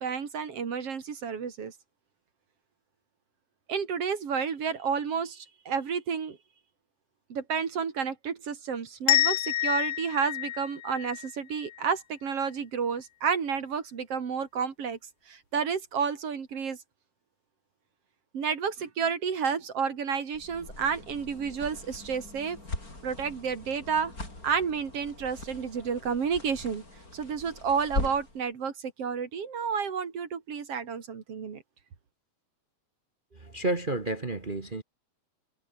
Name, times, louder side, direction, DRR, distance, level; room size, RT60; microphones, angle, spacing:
voice 1, 0.0-1.7 3.7-6.4 7.3-15.0 15.3-16.8 18.3-22.6 23.0-24.1 24.4-26.8 27.1-31.6, right 6 dB, 50° right, 3.3 m, -31 dB
sound 1, 9.1-11.9, left 14 dB, 85° left, 2.5 m, -28 dB
sound 2, 20.3-28.4, left 2 dB, 25° left, 6.7 m, -40 dB
voice 2, 33.3-34.8, right 2 dB, 35° right, 0.7 m, -31 dB
omnidirectional pair, 3.4 m